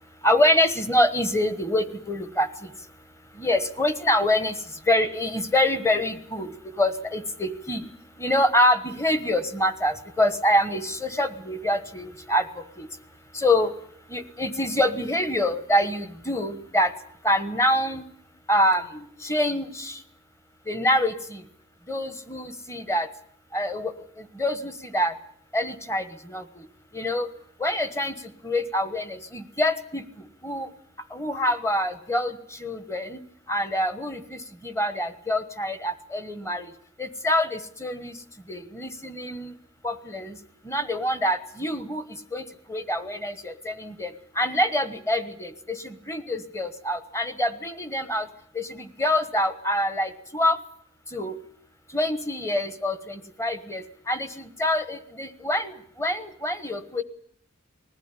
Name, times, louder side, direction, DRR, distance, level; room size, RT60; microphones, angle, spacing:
voice 1, 0.2-2.9 3.3-4.5 4.9-7.9 8.2-12.9 13.3-13.7 14.1-16.9 17.2-18.0 18.5-20.0 20.6-21.4 21.9-23.1 23.5-25.2 25.5-26.7 26.9-27.3 27.6-30.7 31.1-33.2 33.5-36.7 37.0-39.5 39.8-40.4 40.6-48.3 48.5-50.6 51.1-51.4 51.9-57.0, left 1 dB, 15° left, 11 dB, 1.2 m, -26 dB
20.5 x 14.5 x 9.8 m, 0.68 s
head